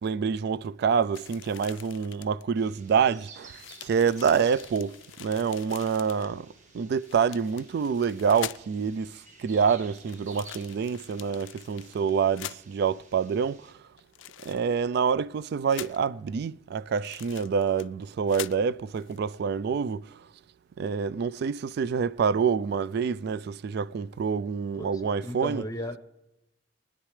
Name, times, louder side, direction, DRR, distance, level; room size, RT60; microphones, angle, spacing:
voice 1, 0.0-13.8 14.4-20.3 20.8-25.6, right 6 dB, 60° right, 0.3 m, -27 dB
sound 1, 1.1-2.4 3.1-3.2 3.5-6.3 7.0-8.8 9.9-12.6 14.0-14.8 15.7-16.1 17.0-18.0 18.3-18.6 18.9-19.2, left 13 dB, 75° left, 0.4 m, -43 dB
sound 2, 2.5-13.7, right 3 dB, 40° right, 1.3 m, -53 dB
voice 2, 24.8-26.0, left 1 dB, 20° left, 0.8 m, -36 dB
21.5 x 10.0 x 3.2 m
head